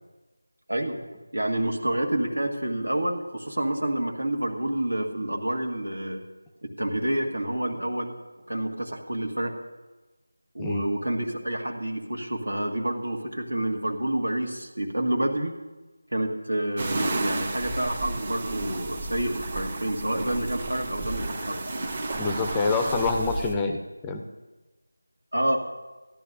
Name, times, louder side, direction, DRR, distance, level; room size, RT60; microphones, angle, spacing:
voice 1, 0.7-1.0 1.3-6.2 6.6-8.1 8.5-9.5 10.5-15.6 16.1-21.6 25.3-25.6, right 1 dB, 80° right, 3 dB, 1.8 m, -28 dB
voice 2, 10.6-10.9 22.2-24.2, left 3 dB, 10° left, 5 dB, 0.5 m, -26 dB
sound 1, 16.8-23.5, right 2 dB, 30° right, 1.0 m, -32 dB
16.5 x 11.0 x 2.7 m, 1.2 s
figure-of-eight pair, 165°, 0 cm